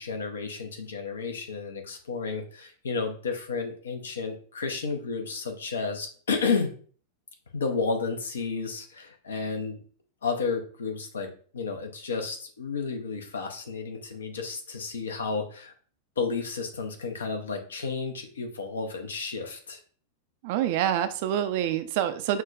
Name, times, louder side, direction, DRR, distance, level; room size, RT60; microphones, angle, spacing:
voice 1, 0.0-6.7 7.5-9.8 10.2-15.7 16.2-19.8, left 4 dB, 70° left, 5 dB, 0.6 m, -32 dB
voice 2, 20.4-22.4, right 11 dB, 50° right, 10 dB, 0.3 m, -26 dB
5.8 x 2.2 x 2.4 m, 0.43 s
figure-of-eight pair, 90°, 0 cm